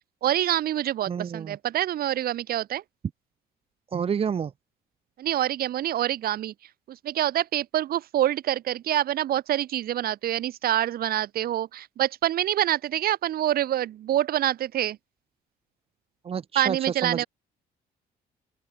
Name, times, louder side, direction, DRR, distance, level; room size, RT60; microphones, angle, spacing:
voice 1, 0.2-2.8 5.2-6.5 6.9-15.0 16.5-17.3, right 12 dB, 60° right, 2.8 m, -26 dB
voice 2, 1.1-1.6 3.9-4.5 16.2-17.2, right 7 dB, 35° right, 0.9 m, -29 dB
open air
cardioid pair, 110°, 17 cm